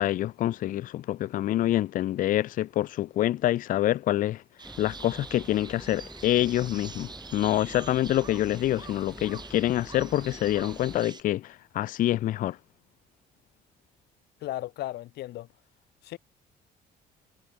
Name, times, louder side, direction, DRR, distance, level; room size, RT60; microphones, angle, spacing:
voice 1, 0.0-4.4 4.8-12.6, left 13 dB, 55° left, 0.4 m, -26 dB
sound 1, 4.6-11.0, equal, ahead, 3.1 m, -46 dB
sound 2, 4.6-11.2, right 5 dB, 25° right, 1.3 m, -46 dB
voice 2, 14.4-15.5 16.0-16.2, left 15 dB, 75° left, 2.4 m, -35 dB
cardioid pair, 110°, 17 cm